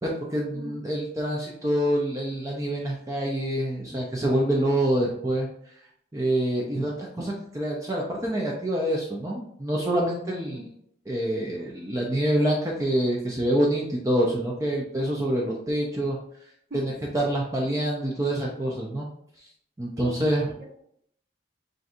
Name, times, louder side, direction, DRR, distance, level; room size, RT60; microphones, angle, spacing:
voice 1, 0.0-5.5 6.1-10.6 11.1-16.2 16.8-19.1 19.8-20.4, right 1 dB, 20° right, -2 dB, 0.5 m, -26 dB
voice 2, 20.0-20.8, left 1 dB, 70° right, -2 dB, 1.0 m, -41 dB
5.5 x 2.6 x 2.5 m, 0.69 s
head